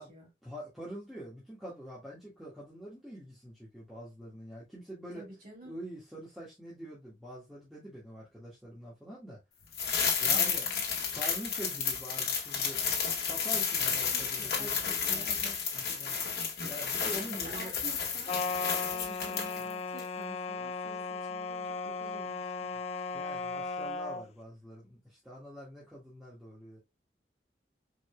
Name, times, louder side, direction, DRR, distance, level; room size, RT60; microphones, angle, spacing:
voice 1, 0.4-5.2 5.6-9.4 10.2-10.7 11.1-12.9 13.3-14.7 15.7-16.3 16.6-17.7 22.9-26.8, equal, ahead, 1.6 m, -45 dB
voice 2, 5.1-5.8 10.3-10.7 14.1-15.6 17.3-18.4 18.9-22.7, right 1 dB, 50° right, 3.1 m, -49 dB
sound 1, 9.7-19.7 20.0-20.1, left 6 dB, 60° left, 1.6 m, -32 dB
sound 2, 18.3-24.2, left 4 dB, 35° left, 0.3 m, -36 dB
4.9 x 4.1 x 2.2 m
head